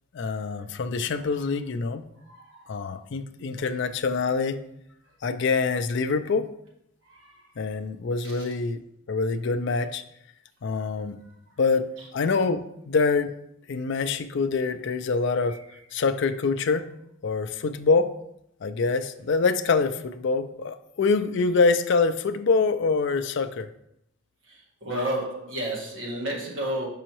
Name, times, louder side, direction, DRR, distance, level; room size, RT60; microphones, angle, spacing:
voice 1, 0.1-2.1 2.7-4.6 5.2-6.5 7.6-8.8 9.1-10.0 10.6-11.2 11.6-13.4 13.7-15.6 15.9-16.9 17.2-18.1 18.6-23.7, left 4 dB, 60° left, 10 dB, 0.4 m, -25 dB
voice 2, 24.8-26.9, right 1 dB, 70° right, -3 dB, 1.7 m, -30 dB
6.1 x 5.5 x 3.0 m, 0.78 s
head